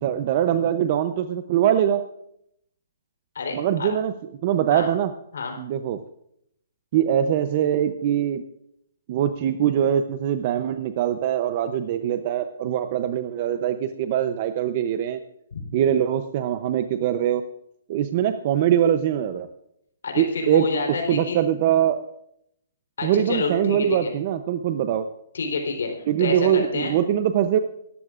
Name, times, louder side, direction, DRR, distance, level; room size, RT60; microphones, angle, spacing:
voice 1, 0.0-2.0 3.5-4.1 4.4-5.1 5.6-6.0 6.9-8.4 9.1-15.2 15.7-17.4 17.9-19.5 20.2-20.7 21.1-22.0 23.0-25.0 26.1-27.6, right 10 dB, 30° right, 9 dB, 0.6 m, -22 dB
voice 2, 3.4-3.9 4.7-4.9 5.3-5.5 15.5-15.6 20.0-21.4 23.0-24.1 25.3-25.9 26.2-27.0, left 4 dB, 90° left, 3 dB, 3.6 m, -28 dB
20.0 x 14.0 x 2.5 m, 0.73 s
hypercardioid pair, 175°, 0 cm